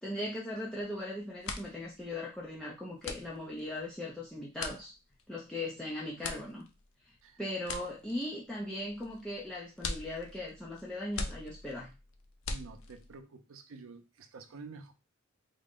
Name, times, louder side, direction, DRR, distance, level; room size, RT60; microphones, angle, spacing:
voice 1, 0.0-4.9 5.3-6.6 7.4-11.9, left 1 dB, 5° left, -6 dB, 0.6 m, -39 dB
sound 1, 0.7-1.0 1.3-13.2, left 4 dB, 75° left, 0.5 m, -43 dB
voice 2, 12.5-14.9, right 4 dB, 80° right, 8 dB, 0.5 m, -49 dB
3.7 x 2.1 x 3.6 m, 0.28 s
head